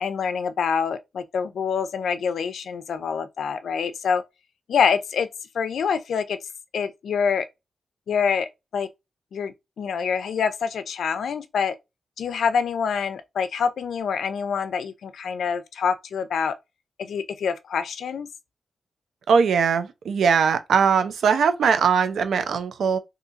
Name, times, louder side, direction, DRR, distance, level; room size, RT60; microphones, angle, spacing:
voice 1, 0.0-4.2 4.7-5.3 5.5-6.4 6.7-7.5 8.1-8.9 9.3-11.7 12.2-16.5 17.0-18.3, left 6 dB, 80° left, 0.4 m, -26 dB
voice 2, 19.3-23.0, right 6 dB, 85° right, 0.5 m, -20 dB
3.8 x 2.7 x 2.4 m
wide cardioid pair, 110°, 0 cm